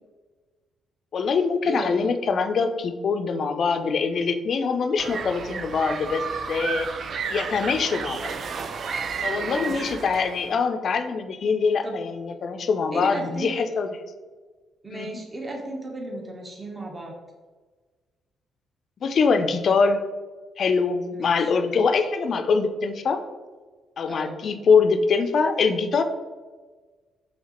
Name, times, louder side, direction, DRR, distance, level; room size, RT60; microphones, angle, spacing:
voice 1, 1.1-6.9 7.3-8.3 9.2-14.0 14.9-15.2 19.0-20.0 20.6-23.2 24.0-26.0, left 5 dB, 55° left, 8 dB, 0.4 m, -23 dB
voice 2, 1.6-2.0 9.4-9.9 11.8-12.0 12.9-13.6 14.8-17.1 21.1-21.5 24.1-24.4, right 2 dB, 25° right, 0 dB, 0.9 m, -35 dB
sound 1, 5.0-10.5, right 5 dB, 50° right, 0.3 m, -32 dB
5.6 x 2.8 x 2.9 m, 1.4 s
cardioid pair, 90°, 0 cm